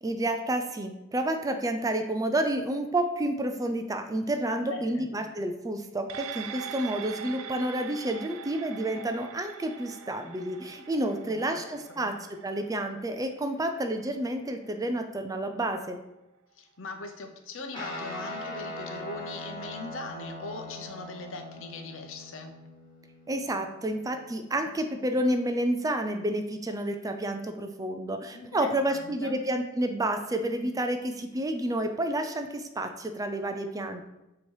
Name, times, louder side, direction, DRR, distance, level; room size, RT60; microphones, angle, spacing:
voice 1, 0.0-12.1 12.4-16.0 23.3-34.0, right 1 dB, 15° right, 7 dB, 0.4 m, -30 dB
voice 2, 4.5-5.1 11.2-11.7 12.0-12.1 16.6-22.5 28.3-29.4, left 2 dB, 65° left, 5 dB, 0.8 m, -41 dB
sound 1, 6.1-14.8 15.2-15.3, right 7 dB, 75° right, 0.4 m, -43 dB
Guitar, 17.7-25.4, left 1 dB, 20° left, 1.4 m, -42 dB
7.1 x 3.0 x 4.7 m, 0.95 s
head